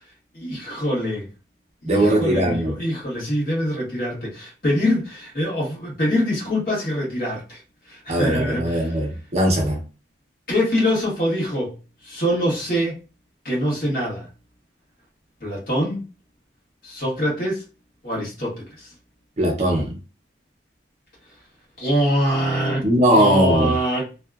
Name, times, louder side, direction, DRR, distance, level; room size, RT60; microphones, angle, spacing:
voice 1, 0.3-1.3 1.8-7.6 7.9-9.0 10.5-11.7 12.0-12.9 13.4-14.3 15.4-16.1 16.8-17.6 18.0-18.9 21.8-22.9 23.1-24.1, equal, 50° left, 1.3 m, -24 dB
voice 2, 1.8-2.7 8.1-9.8 19.4-20.0 22.8-23.7, right 1 dB, 35° right, 0.6 m, -19 dB
2.7 x 2.3 x 2.3 m
head